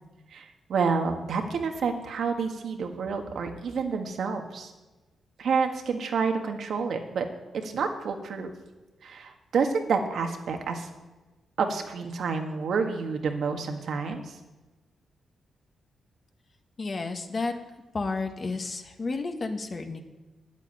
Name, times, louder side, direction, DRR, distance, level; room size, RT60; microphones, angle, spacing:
voice 1, 0.3-4.7 5.4-7.3 7.5-8.5 9.0-10.9 11.6-14.3, right 5 dB, 70° right, 4 dB, 1.7 m, -29 dB
voice 2, 16.8-17.5 17.9-20.0, left 3 dB, 35° left, 6 dB, 1.3 m, -31 dB
9.8 x 8.3 x 9.5 m, 1.2 s
wide cardioid pair, 135°, 0 cm